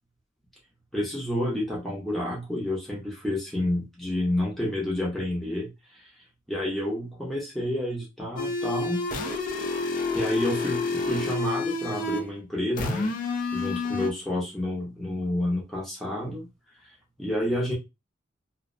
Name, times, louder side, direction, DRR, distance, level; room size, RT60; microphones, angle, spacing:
voice 1, 0.9-5.7 6.5-9.0 10.1-13.1 13.5-16.5 17.2-17.7, left 1 dB, ahead, -5 dB, 0.6 m, -29 dB
sound 1, 8.4-12.3 12.8-14.1, left 3 dB, 45° left, 0.4 m, -29 dB
2.5 x 2.1 x 2.4 m, 0.24 s
head